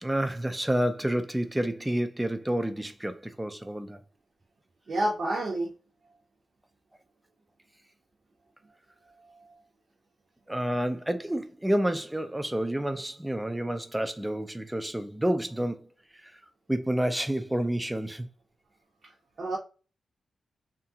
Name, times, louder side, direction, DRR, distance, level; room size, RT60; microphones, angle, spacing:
voice 1, 0.0-4.0 10.5-15.9 16.2-16.3 16.7-18.3, right 1 dB, 10° right, 0.3 m, -29 dB
voice 2, 4.9-5.7 9.3-9.5 19.4-19.6, right 1 dB, 50° right, 0.6 m, -29 dB
2.7 x 2.3 x 2.7 m
wide cardioid pair, 140°, 0 cm